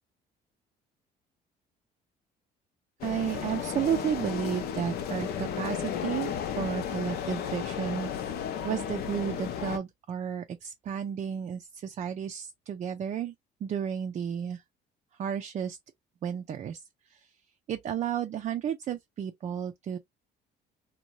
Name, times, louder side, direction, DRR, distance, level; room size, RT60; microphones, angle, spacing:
sound 1, 3.0-9.8, left 8 dB, 70° left, 0.6 m, -34 dB
voice 1, 3.0-8.1 8.6-13.3 13.6-14.6 15.2-15.8 16.2-17.3 17.7-20.0, right 8 dB, 40° right, 0.4 m, -32 dB
2.7 x 2.2 x 2.9 m
cardioid pair, 110°, 17 cm